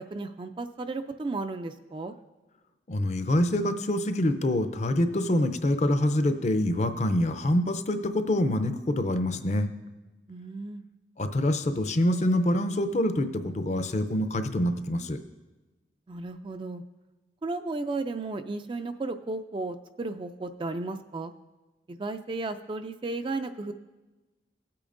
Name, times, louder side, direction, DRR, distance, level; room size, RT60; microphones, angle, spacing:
voice 1, 0.0-2.1 10.3-10.8 16.1-16.8 17.4-21.3 21.9-23.7, right 3 dB, 30° right, 9 dB, 0.3 m, -34 dB
voice 2, 2.9-9.7 11.2-15.2, left 1 dB, 40° left, 9 dB, 0.5 m, -26 dB
16.5 x 8.6 x 2.5 m, 1.1 s
head